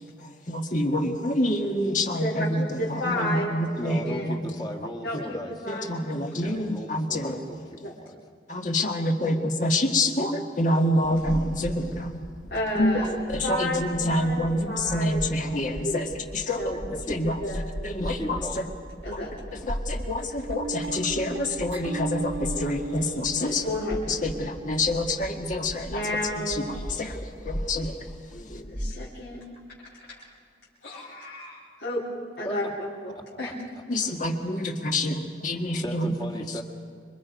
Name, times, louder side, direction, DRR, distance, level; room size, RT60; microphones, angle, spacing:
voice 1, 0.2-4.4 5.7-7.6 8.5-12.2 12.8-17.4 17.8-18.6 19.1-19.2 19.6-23.6 24.1-26.0 26.5-28.0 28.5-28.6 30.8-31.1 33.9-36.1, left 1 dB, 45° left, 3 dB, 1.8 m, -27 dB
voice 2, 2.2-4.3 5.0-5.9 6.4-6.5 7.8-7.9 9.2-9.3 12.5-15.2 15.7-16.1 16.6-17.0 17.2-17.6 19.0-19.3 23.4-24.5 25.9-26.6 28.3-29.4 30.0-30.3 30.8-32.0 32.4-33.5, left 1 dB, 70° left, -8 dB, 3.9 m, -32 dB
voice 3, 3.8-5.5 6.4-8.2 16.9-17.2 18.0-18.6 32.5-32.6 33.4-33.5 35.8-36.6, equal, 25° left, 2 dB, 1.9 m, -37 dB
sound 1, 11.1-28.9, equal, 5° left, 1.5 m, -38 dB
sound 2, 20.5-25.0, right 3 dB, 80° right, 1.8 m, -37 dB
26.5 x 24.0 x 5.3 m, 2.1 s
head